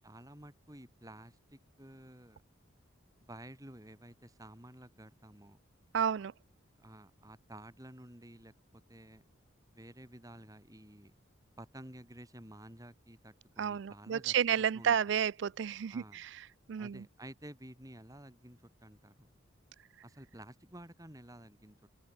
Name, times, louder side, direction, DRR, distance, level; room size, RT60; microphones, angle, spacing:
voice 1, 0.0-2.4 3.2-5.6 6.8-9.2 9.7-11.1 11.6-14.3 14.7-15.0 15.9-16.2 16.8-19.3 20.0-21.8, right 1 dB, 15° right, 6.5 m, -52 dB
voice 2, 5.9-6.3 13.6-16.3 16.7-17.0, right 8 dB, 60° right, 0.3 m, -31 dB
open air
head